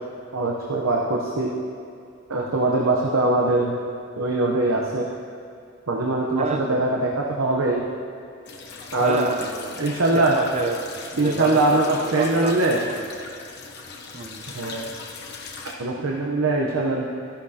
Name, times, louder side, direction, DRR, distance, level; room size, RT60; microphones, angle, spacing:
voice 1, 0.3-1.5 2.3-3.8 4.2-5.1 5.9-7.9 8.9-9.3 9.8-10.4 11.2-12.8 14.5-14.9 15.8-17.1, right 2 dB, 85° right, -1 dB, 0.9 m, -22 dB
sound 1, 8.4-15.7, left 4 dB, 55° left, 0.9 m, -39 dB
voice 2, 9.0-9.8 10.1-10.8 11.1-13.0 14.1-14.5, right 3 dB, 35° right, 5 dB, 0.6 m, -28 dB
13.5 x 11.5 x 2.9 m, 2.4 s
head